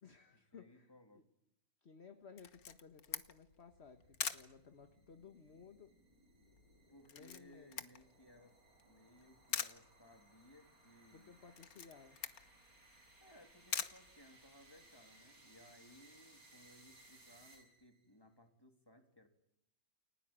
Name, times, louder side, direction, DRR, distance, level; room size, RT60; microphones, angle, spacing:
voice 1, 0.0-1.2 1.8-6.0 7.1-7.8 11.1-12.2, left 5 dB, 45° left, 7 dB, 1.7 m, -58 dB
voice 2, 0.5-1.2 6.9-8.6 8.9-11.3 13.2-19.3, left 1 dB, 15° left, 5 dB, 3.3 m, -63 dB
Camera, 2.4-14.9, left 7 dB, 75° left, 1.8 m, -46 dB
sound 1, 3.4-18.0, right 2 dB, 70° right, 7.8 m, -65 dB
29.5 x 21.0 x 9.0 m, 0.76 s
omnidirectional pair, 1.6 m